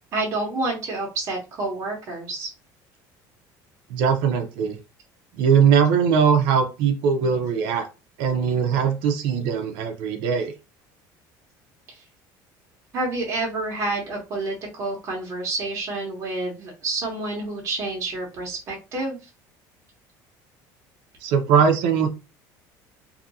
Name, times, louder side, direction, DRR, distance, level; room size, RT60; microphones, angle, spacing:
voice 1, 0.1-2.5 11.9-12.0 12.9-19.3, right 2 dB, 35° right, -2 dB, 0.9 m, -29 dB
voice 2, 3.9-4.8 5.3-7.9 8.2-10.5 21.2-22.1, right 7 dB, 80° right, 6 dB, 0.5 m, -20 dB
2.7 x 2.4 x 2.7 m, 0.29 s
cardioid pair, 150°, 8 cm